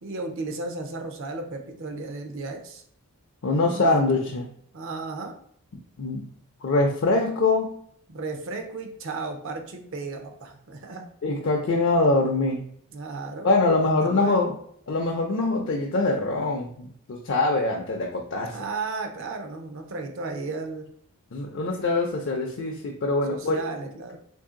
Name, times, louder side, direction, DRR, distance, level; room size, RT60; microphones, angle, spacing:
voice 1, 0.0-2.8 3.6-4.2 4.7-5.3 8.1-11.0 12.9-13.5 13.8-14.5 18.5-20.9 23.3-24.2, right 3 dB, 60° right, 5 dB, 0.6 m, -34 dB
voice 2, 3.4-4.5 6.0-6.2 6.6-7.7 11.2-12.6 13.4-14.6 14.9-18.6 21.3-23.6, left 2 dB, 55° left, 1 dB, 0.5 m, -23 dB
3.0 x 2.7 x 3.7 m, 0.64 s
head